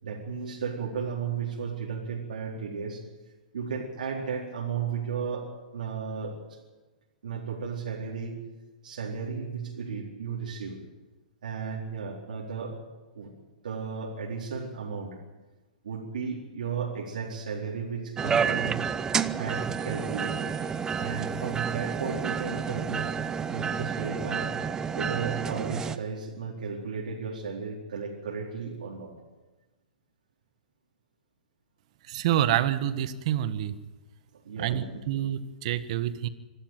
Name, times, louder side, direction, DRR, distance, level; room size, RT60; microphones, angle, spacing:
voice 1, 0.0-3.0 3.5-5.5 5.7-6.6 7.2-8.4 8.8-10.8 11.4-12.8 13.1-13.3 13.6-15.2 15.8-18.8 19.4-20.6 21.0-23.2 23.5-24.5 24.9-29.1 34.3-35.0, right 6 dB, 80° right, -3 dB, 4.4 m, -34 dB
sound 1, 18.2-26.0, right 6 dB, 15° right, 0.7 m, -30 dB
voice 2, 32.1-33.7 34.6-36.3, right 11 dB, 50° right, 12 dB, 1.5 m, -27 dB
25.0 x 13.0 x 9.3 m, 1.2 s
hypercardioid pair, 140°, 4 cm